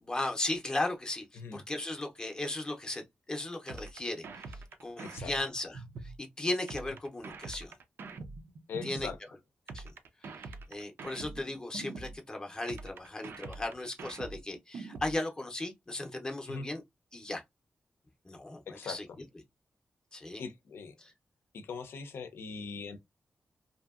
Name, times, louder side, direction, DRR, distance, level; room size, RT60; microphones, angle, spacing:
voice 1, 0.0-1.2 1.5-3.0 3.3-4.4 4.8-7.7 8.8-9.1 9.7-9.9 10.2-10.3 10.7-16.8 17.1-17.4 18.3-19.1 20.1-20.4 21.0-21.1, left 2 dB, 20° left, 0.6 m, -36 dB
sound 1, 3.7-6.2 6.7-9.2 9.7-12.2 12.7-15.2, right 3 dB, 70° right, 0.4 m, -44 dB
voice 2, 5.0-5.3 8.7-9.2 16.5-16.7 18.7-19.0 20.4-20.9 21.5-23.0, left 5 dB, 85° left, 0.5 m, -41 dB
2.6 x 2.6 x 2.4 m
wide cardioid pair, 140°, 4 cm